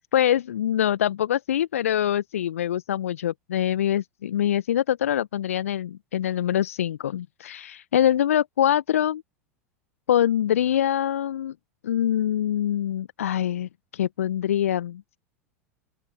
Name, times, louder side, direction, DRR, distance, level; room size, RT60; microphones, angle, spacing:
voice 1, 0.1-9.2 10.1-11.5 11.8-15.2, left 11 dB, 70° left, 0.8 m, -24 dB
open air
figure-of-eight pair, 85°, 8 cm